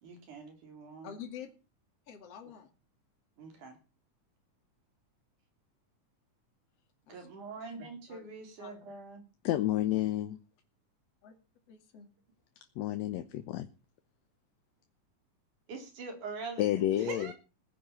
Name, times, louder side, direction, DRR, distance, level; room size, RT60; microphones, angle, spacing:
voice 1, 0.0-1.1 3.4-3.8 7.1-9.2 15.7-17.3, right 4 dB, 75° right, 5 dB, 5.0 m, -44 dB
voice 2, 1.0-1.5 2.1-2.7 7.1-7.3 8.1-8.3 8.6-8.7 11.2-11.3 11.7-12.1, left 8 dB, 55° left, 3 dB, 3.1 m, -47 dB
voice 3, 9.4-10.4 12.8-13.7 16.6-17.3, left 13 dB, 70° left, 9 dB, 2.0 m, -30 dB
16.5 x 10.0 x 7.1 m, 0.34 s
omnidirectional pair, 3.5 m